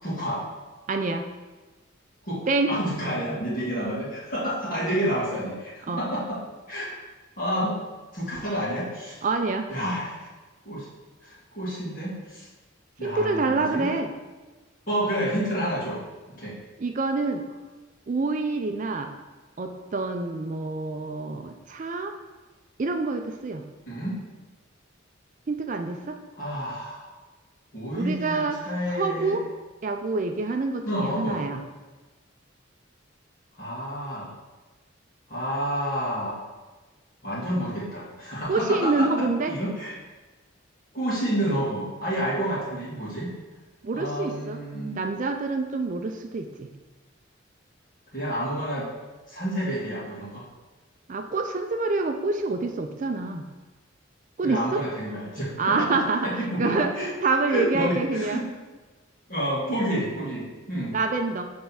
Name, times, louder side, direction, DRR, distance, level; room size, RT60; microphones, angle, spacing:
voice 1, 0.0-0.4 2.2-6.4 6.7-7.0 7.4-7.8 8.1-9.2 9.7-10.1 10.7-10.9 11.2-12.5 13.0-13.9 14.9-16.0 16.4-16.6 23.9-24.2 26.3-27.1 27.7-29.4 30.9-31.4 33.6-34.3 35.3-36.4 37.2-40.0 40.9-43.3 43.9-45.0 48.1-48.9 49.3-50.5 54.4-57.1 57.5-58.5 59.3-61.0, equal, 45° left, -8 dB, 1.9 m, -29 dB
voice 2, 0.9-1.3 2.5-2.7 5.9-6.0 9.2-9.7 13.0-14.1 16.8-17.4 18.1-19.1 19.6-22.1 22.8-23.6 25.5-26.2 28.0-28.6 28.9-29.4 29.8-31.6 38.5-39.5 43.8-44.6 45.0-46.7 51.1-53.4 54.4-54.8 55.6-56.3 56.6-56.9 57.2-58.4 60.9-61.5, right 3 dB, 40° right, 6 dB, 0.4 m, -26 dB
6.5 x 3.4 x 5.6 m, 1.2 s
head